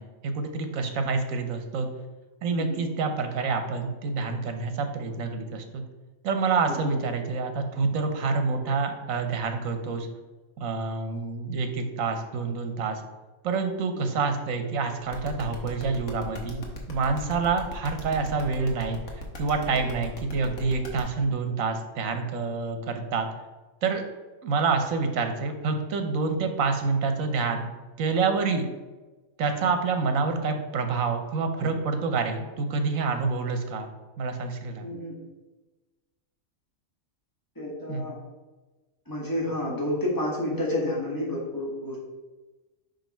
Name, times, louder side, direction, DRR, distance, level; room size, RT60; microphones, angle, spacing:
voice 1, 0.0-1.9 2.4-5.8 6.2-10.1 10.6-13.0 13.4-16.6 16.9-19.0 19.4-23.3 23.8-24.0 24.4-27.7 28.0-28.7 29.4-33.9 34.2-34.9 37.9-38.1, right 4 dB, 80° right, 6 dB, 1.2 m, -27 dB
voice 2, 2.5-2.8 6.7-7.0 13.9-14.0 34.8-35.2 37.5-38.2 39.0-42.0, left 1 dB, 15° left, -5 dB, 1.7 m, -30 dB
sound 1, 15.1-21.0, equal, 90° left, 1.5 m, -39 dB
5.2 x 5.1 x 4.4 m, 1.2 s
omnidirectional pair, 1.4 m